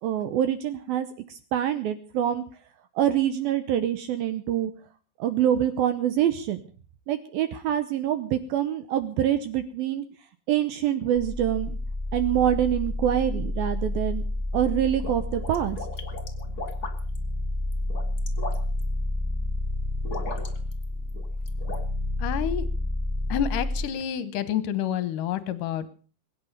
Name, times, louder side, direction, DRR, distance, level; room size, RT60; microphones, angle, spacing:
voice 1, 0.0-2.4 3.0-4.7 5.2-6.6 7.1-10.1 10.5-11.8 12.1-14.2 14.5-15.8, right 10 dB, 75° right, 11 dB, 2.3 m, -25 dB
sound 1, 11.1-23.8, left 2 dB, 20° right, 2.0 m, -30 dB
sound 2, 14.7-17.2 17.7-18.8 20.0-20.8 21.1-21.8, left 2 dB, 30° left, 1.8 m, -37 dB
voice 2, 22.2-22.7 23.3-25.9, left 10 dB, 70° left, 15 dB, 2.2 m, -28 dB
22.0 x 9.6 x 6.7 m, 0.40 s
omnidirectional pair, 5.1 m